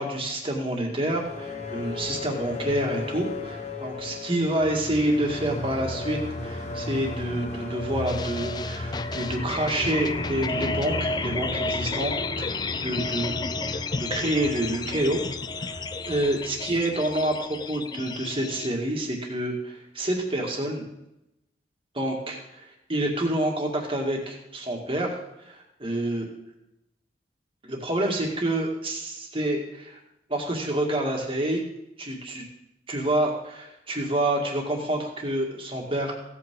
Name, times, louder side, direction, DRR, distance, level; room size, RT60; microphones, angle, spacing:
voice 1, 0.0-12.5 12.8-13.4 13.7-15.2 15.6-20.8 21.9-22.4 22.9-25.1 25.5-26.3 27.6-30.0 30.3-31.6 32.0-32.4 32.9-36.2, right 1 dB, 30° right, 0 dB, 2.0 m, -28 dB
sound 1, 0.9-17.8, left 2 dB, 40° left, 1.1 m, -35 dB
sound 2, 8.1-18.7, left 4 dB, 25° left, 0.3 m, -32 dB
16.0 x 8.4 x 3.8 m, 0.87 s
head